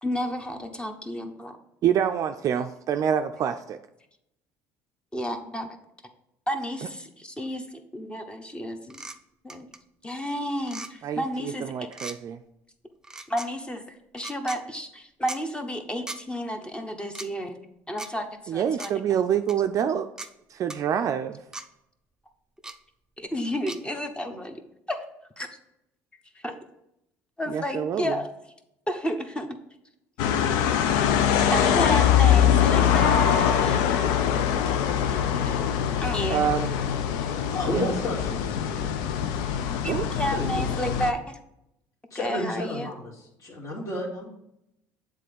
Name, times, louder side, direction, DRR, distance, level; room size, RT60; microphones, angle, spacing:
voice 1, 0.0-1.6 5.1-5.8 6.5-9.0 9.4-9.7 10.0-11.7 12.0-12.1 13.3-17.6 17.9-18.9 23.2-24.6 24.9-25.0 25.4-25.5 26.3-26.5 27.4-28.3 28.9-29.6 30.8-31.0 31.5-34.0 35.2-36.5 39.8-41.4 42.1-42.9, equal, 15° left, 6 dB, 1.1 m, -31 dB
voice 2, 1.8-3.8 11.0-12.4 18.5-20.1 20.5-21.4 27.5-28.2 36.3-36.7 37.6-37.9 39.9-40.0, right 9 dB, 50° right, 7 dB, 0.4 m, -26 dB
sound 1, 8.9-9.2 9.5-9.8 10.6-10.9 11.9-12.2 13.0-13.5 14.2-14.6 15.3-15.4 16.1-16.2 17.1-17.3 18.0-18.1 18.8-18.9 19.5-19.6 20.2-20.3 20.7-20.8 21.5-21.7 22.6-22.8 23.7-23.8, right 2 dB, 10° right, 0.6 m, -38 dB
sound 2, 30.2-41.1, left 9 dB, 75° left, 0.5 m, -23 dB
voice 3, 37.5-38.9 40.0-40.7 42.1-44.3, left 1 dB, 45° left, -2 dB, 2.5 m, -32 dB
7.5 x 3.8 x 5.3 m, 0.81 s
supercardioid pair, 75°, 7 cm